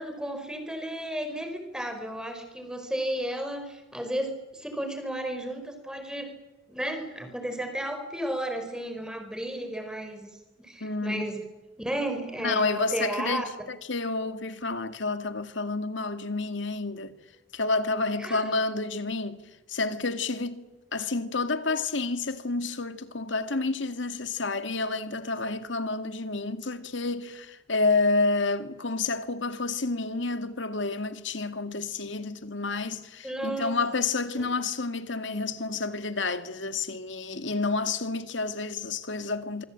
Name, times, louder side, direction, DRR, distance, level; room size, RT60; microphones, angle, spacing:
voice 1, 0.0-6.3 6.7-10.3 10.6-11.4 11.8-13.5 18.2-18.5 33.2-33.8 34.3-34.5, right 1 dB, 5° right, 5.1 m, -33 dB
voice 2, 10.8-11.2 12.4-13.4 13.7-17.2 17.5-20.7 20.9-39.6, left 3 dB, 80° left, 2.2 m, -29 dB
26.5 x 24.0 x 8.7 m
head